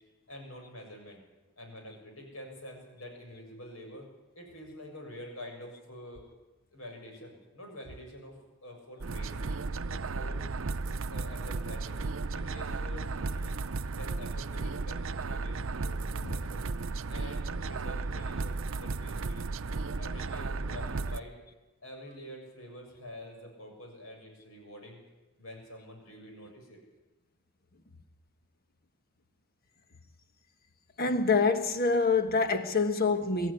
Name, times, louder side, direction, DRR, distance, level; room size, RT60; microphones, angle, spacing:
voice 1, 0.3-1.2 1.6-4.1 4.4-6.2 6.7-9.4 9.9-10.4 11.1-12.0 12.3-13.6 13.9-16.7 17.1-19.4 20.0-21.4 21.8-25.0 25.4-26.8, left 1 dB, 80° left, 6.9 m, -47 dB
sound 1, 9.0-21.2, right 3 dB, 70° right, 0.6 m, -34 dB
voice 2, 31.0-33.5, left 4 dB, 45° left, 1.5 m, -26 dB
23.5 x 14.0 x 9.9 m
head